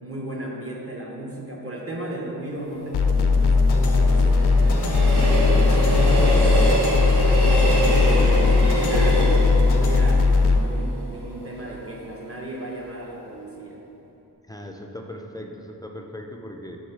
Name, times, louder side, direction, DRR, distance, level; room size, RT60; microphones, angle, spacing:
voice 1, 0.0-6.2 6.7-13.8, right 1 dB, 35° right, -2 dB, 0.7 m, -35 dB
Train, 2.6-11.7 12.1-12.2, right 1 dB, 80° right, 1.4 m, -26 dB
sound 1, 2.9-10.6, left 3 dB, 80° left, 0.5 m, -18 dB
voice 2, 14.5-16.8, left 1 dB, 10° left, 2 dB, 0.3 m, -38 dB
6.4 x 3.6 x 5.8 m, 2.9 s
wide cardioid pair, 175°, 40 cm